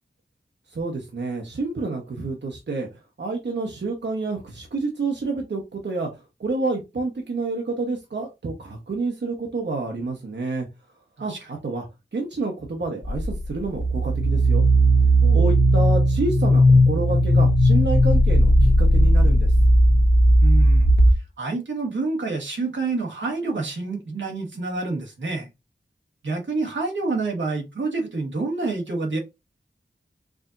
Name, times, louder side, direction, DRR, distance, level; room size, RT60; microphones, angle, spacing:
voice 1, 0.7-2.9 3.2-10.7 11.2-11.3 11.6-11.9 12.1-14.6 15.3-19.5, right 3 dB, 70° right, 1.0 m, -28 dB
voice 2, 11.2-11.5 15.2-15.5 20.4-20.9 21.4-25.5 26.2-29.2, right 3 dB, 85° right, 1.3 m, -28 dB
sound 1, 13.0-21.1, equal, 65° left, 1.0 m, -16 dB
4.8 x 2.8 x 2.5 m
wide cardioid pair, 45°, 19 cm